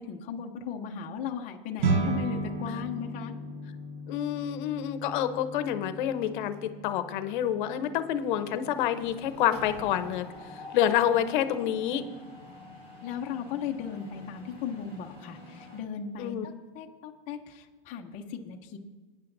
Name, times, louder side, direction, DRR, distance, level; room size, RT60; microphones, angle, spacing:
voice 1, 0.0-3.3 13.0-18.8, left 7 dB, 25° left, 1 dB, 0.6 m, -37 dB
sound 1, 1.8-11.3, right 3 dB, 50° right, 1.3 m, -35 dB
voice 2, 4.1-10.3 10.7-12.0 16.2-16.4, left 10 dB, 55° left, 10 dB, 0.8 m, -28 dB
Mechanisms, 6.2-6.8 7.1-7.4 7.6-15.8, left 1 dB, 35° right, 3.2 m, -48 dB
19.5 x 9.6 x 2.6 m, 1.4 s
supercardioid pair, 150°, 29 cm